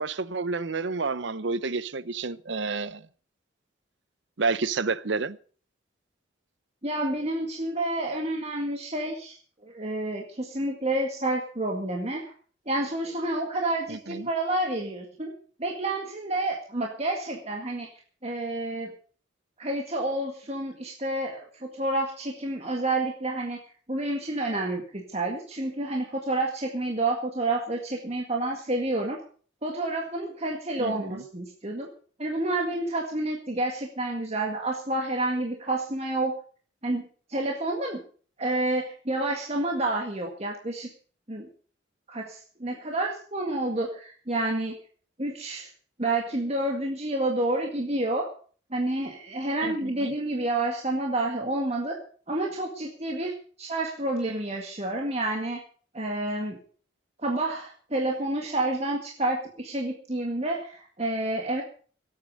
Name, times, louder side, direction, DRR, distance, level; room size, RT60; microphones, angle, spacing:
voice 1, 0.0-3.1 4.4-5.4 13.9-14.3 30.8-31.2 49.6-50.1, right 4 dB, 65° right, 0.8 m, -30 dB
voice 2, 6.8-9.4 9.6-12.3 12.7-15.3 15.6-17.9 18.2-18.9 19.6-23.6 23.9-29.2 29.6-31.9 32.2-36.3 36.8-38.0 38.4-40.9 41.3-41.5 42.1-44.8 45.2-45.7 46.0-48.3 48.7-52.0 52.3-55.6 55.9-56.6 57.2-61.6, right 2 dB, 30° right, 2.0 m, -29 dB
18.0 x 8.7 x 6.5 m
head